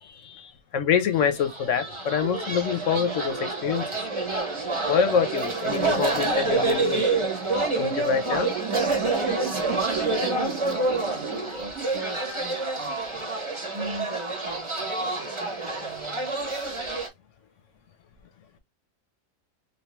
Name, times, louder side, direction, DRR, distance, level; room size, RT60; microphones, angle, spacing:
voice 1, 0.0-3.9 4.9-7.0 7.8-8.5, left 7 dB, 65° left, 0.9 m, -26 dB
sound 1, 1.3-17.1, right 3 dB, 25° right, 0.9 m, -27 dB
voice 2, 9.4-13.3 13.7-16.3, right 2 dB, 45° right, 0.5 m, -39 dB
3.4 x 2.7 x 2.9 m
omnidirectional pair, 1.5 m